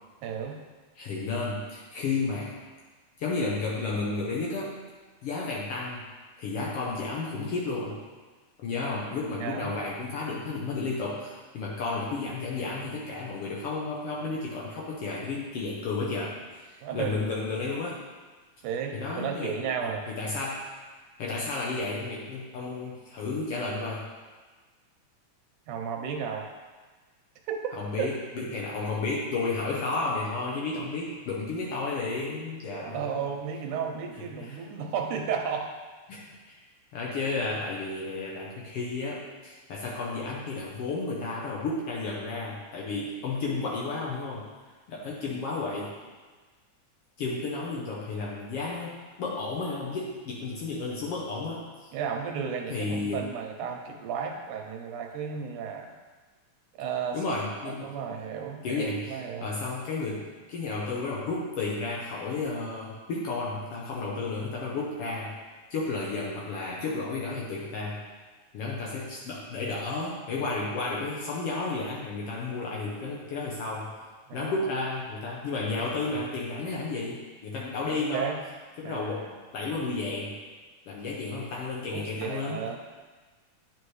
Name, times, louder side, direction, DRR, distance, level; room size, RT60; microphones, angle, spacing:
voice 1, 0.2-0.6 9.4-9.8 16.8-17.3 18.6-20.1 25.7-26.5 27.5-27.6 28.0-28.1 32.7-35.7 45.0-45.1 51.9-55.9 56.8-57.4 57.6-59.5 74.3-74.6 77.9-78.4 78.8-79.3 81.9-82.8, right 7 dB, 85° right, 2 dB, 2.3 m, -33 dB
voice 2, 1.0-2.5 3.2-4.7 5.2-6.1 6.4-8.0 8.6-16.4 16.7-18.0 18.9-19.5 19.8-20.7 21.2-24.1 27.8-33.3 34.2-34.6 36.1-36.6 36.9-44.5 44.9-45.9 47.2-51.9 52.7-53.3 57.1-57.9 58.6-65.4 65.7-68.0 68.5-73.9 74.3-78.3 78.8-80.4 80.9-82.7, left 3 dB, 65° left, -4 dB, 1.5 m, -32 dB
9.5 x 5.0 x 3.2 m, 1.3 s
omnidirectional pair, 3.4 m